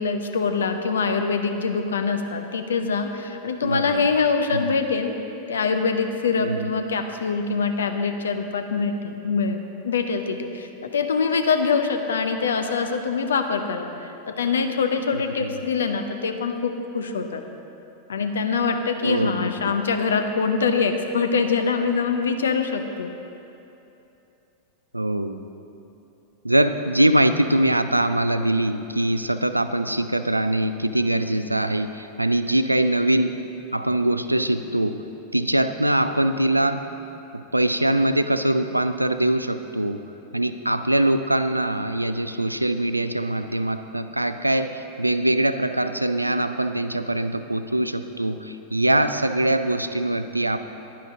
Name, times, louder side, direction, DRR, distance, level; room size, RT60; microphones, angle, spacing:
voice 1, 0.0-5.2 5.5-17.4 18.1-23.1, left 5 dB, 70° left, 6 dB, 0.7 m, -24 dB
voice 2, 3.6-4.1 4.5-4.7 6.4-6.7 15.1-15.6 19.0-19.5 24.9-25.4 26.4-33.4 33.7-35.0 35.3-36.8 37.5-40.0 40.3-50.6, right 1 dB, 85° right, 10 dB, 0.4 m, -23 dB
10.5 x 10.5 x 3.7 m, 2.9 s
figure-of-eight pair, 90°, 0 cm